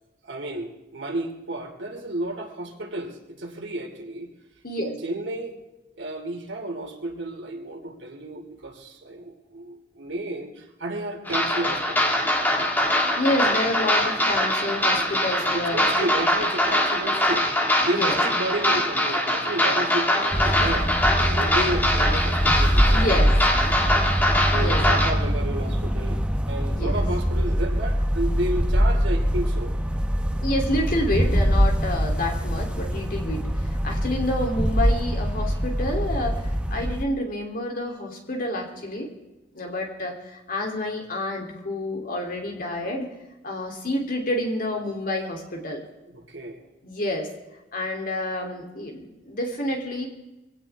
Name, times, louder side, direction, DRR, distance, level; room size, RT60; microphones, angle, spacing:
voice 1, 0.2-4.3 4.8-5.6 6.0-12.1 15.5-17.5 17.9-20.9 21.2-23.4 24.5-26.2 26.5-29.8 46.1-46.6, right 1 dB, 80° right, 2 dB, 2.7 m, -32 dB
sound 1, 11.3-25.1, left 1 dB, 10° left, 2.0 m, -23 dB
voice 2, 13.2-16.1 17.9-18.2 22.9-23.3 24.5-24.8 26.7-27.0 30.4-39.1 39.5-43.1 43.4-45.8 46.8-47.3 47.7-50.1, left 1 dB, 50° left, 1 dB, 3.1 m, -28 dB
sound 2, 20.3-37.0, equal, 5° right, 0.8 m, -23 dB
23.0 x 17.0 x 3.6 m, 0.98 s
head